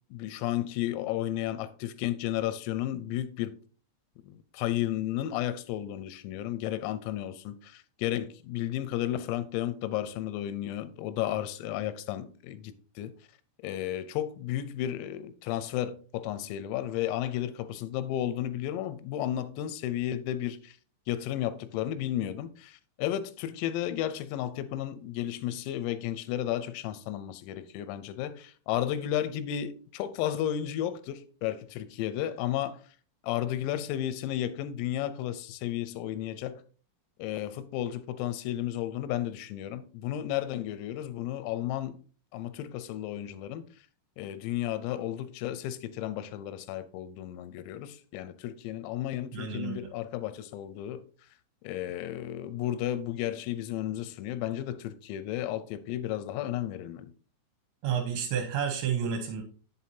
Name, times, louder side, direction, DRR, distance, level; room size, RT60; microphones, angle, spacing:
voice 1, 0.1-3.6 4.3-13.1 13.6-20.8 21.1-32.8 33.2-36.6 37.2-42.0 42.3-43.6 44.2-51.0 51.6-57.1, left 12 dB, 90° left, 3.4 m, -33 dB
voice 2, 49.3-49.9 57.8-59.4, right 7 dB, 75° right, 2.8 m, -30 dB
8.8 x 7.7 x 2.7 m
omnidirectional pair, 5.9 m